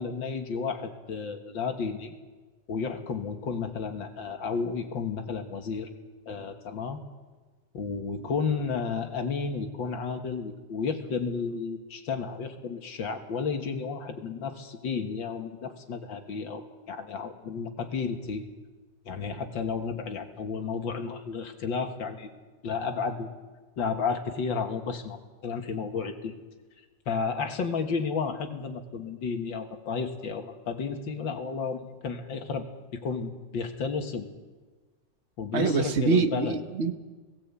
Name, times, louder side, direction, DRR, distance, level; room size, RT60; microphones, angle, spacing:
voice 1, 0.0-2.1 2.7-5.9 6.3-7.0 7.7-18.5 19.1-22.3 22.6-23.3 23.8-25.2 25.4-26.3 27.1-32.7 32.9-34.3 35.4-36.6, left 5 dB, 80° left, 6 dB, 2.4 m, -32 dB
voice 2, 35.5-36.9, right 4 dB, 40° right, 8 dB, 1.3 m, -25 dB
18.0 x 18.0 x 8.4 m, 1.3 s
omnidirectional pair, 2.0 m